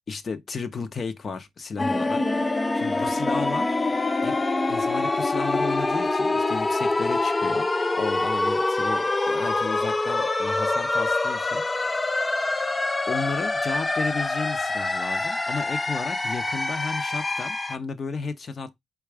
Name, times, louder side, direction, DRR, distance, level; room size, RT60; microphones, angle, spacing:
voice 1, 0.1-2.2 2.7-3.8 4.2-4.4 4.7-7.7 7.9-11.6 13.1-18.8, left 4 dB, 40° left, 0.8 m, -33 dB
sound 1, 1.8-17.8, left 2 dB, 20° left, 0.4 m, -25 dB
4.5 x 2.4 x 4.7 m
cardioid pair, 90°, 0 cm